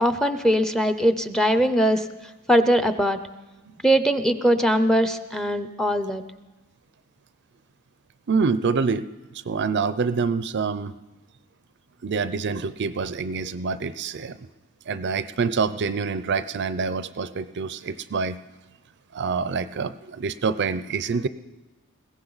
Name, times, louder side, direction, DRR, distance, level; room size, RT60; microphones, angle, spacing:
voice 1, 0.0-2.0 2.5-3.2 3.8-6.2, equal, ahead, 9 dB, 0.6 m, -21 dB
voice 2, 8.3-9.1 9.5-10.9 12.0-14.5 14.9-18.4 19.1-21.3, right 5 dB, 50° right, 14 dB, 0.5 m, -26 dB
21.0 x 17.0 x 4.0 m, 1.1 s
head